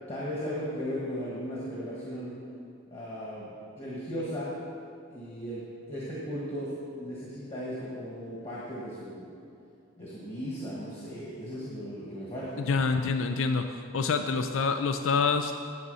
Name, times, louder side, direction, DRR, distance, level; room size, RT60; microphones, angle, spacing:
voice 1, 0.1-2.4 2.9-4.6 5.1-9.3 10.0-12.6, equal, 30° left, -6 dB, 1.5 m, -36 dB
voice 2, 12.6-15.5, left 4 dB, 85° left, 7 dB, 0.4 m, -27 dB
9.6 x 7.5 x 5.4 m, 2.5 s
head